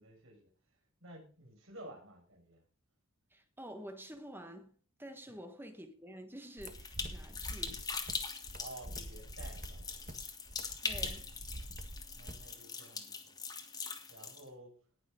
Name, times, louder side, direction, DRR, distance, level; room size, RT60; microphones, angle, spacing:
voice 1, 0.0-2.6 5.2-5.4 8.5-10.1 12.1-13.4 14.1-14.8, right 1 dB, 65° right, 6.0 m, -53 dB
voice 2, 3.3-7.9 10.8-11.3, equal, 10° right, 1.3 m, -49 dB
sound 1, 6.6-14.4, left 4 dB, 15° left, 1.6 m, -42 dB
sound 2, 6.6-12.5, right 1 dB, 35° right, 1.4 m, -46 dB
18.5 x 6.6 x 5.0 m
head